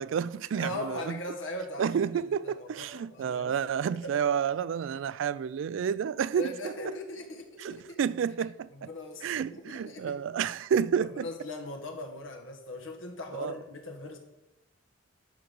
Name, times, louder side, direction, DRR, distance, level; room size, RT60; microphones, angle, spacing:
voice 1, 0.0-1.2 1.8-6.5 7.6-8.7 9.2-11.3 13.4-13.5, right 7 dB, 70° right, 0.3 m, -30 dB
voice 2, 0.5-3.5 3.8-4.2 6.3-8.0 8.7-10.2 11.0-14.2, left 1 dB, 75° left, 1.5 m, -40 dB
11.5 x 3.8 x 6.9 m
head